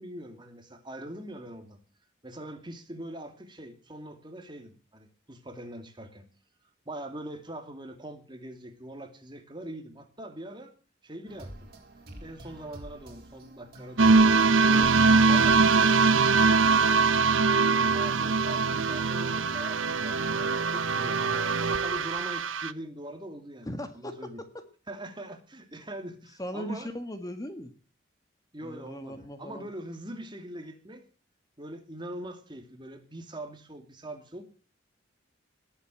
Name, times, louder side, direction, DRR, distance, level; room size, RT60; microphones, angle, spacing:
voice 1, 0.0-1.8 2.2-6.3 6.9-10.7 11.0-11.7 12.2-14.4 14.6-15.0 15.3-16.9 17.6-21.2 21.6-23.7 23.9-24.4 24.9-26.9 28.5-31.0 31.6-34.5, right 1 dB, 25° right, 6 dB, 2.6 m, -42 dB
sound 1, 11.3-16.5, right 1 dB, 55° right, 4.5 m, -47 dB
sound 2, 14.0-22.7, right 4 dB, 90° right, 0.8 m, -22 dB
voice 2, 17.5-18.3 20.9-21.6 23.7-24.5 26.4-27.7 28.6-29.7, equal, 20° left, 8 dB, 1.6 m, -39 dB
19.5 x 8.2 x 7.7 m, 0.39 s
head